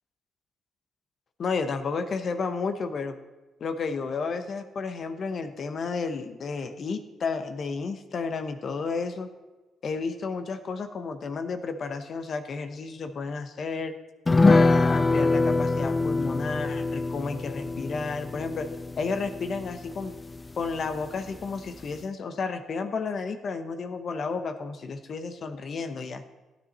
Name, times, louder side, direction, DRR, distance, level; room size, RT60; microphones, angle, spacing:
voice 1, 1.4-3.2 3.6-9.3 9.8-13.9 14.4-18.7 19.0-20.1 20.6-26.2, left 4 dB, 50° left, 9 dB, 1.0 m, -32 dB
sound 1, 14.3-21.1 21.4-21.5 21.8-22.0, left 3 dB, 20° left, 0.4 m, -25 dB
13.5 x 9.3 x 4.3 m, 1.2 s
cardioid pair, 90°, 0 cm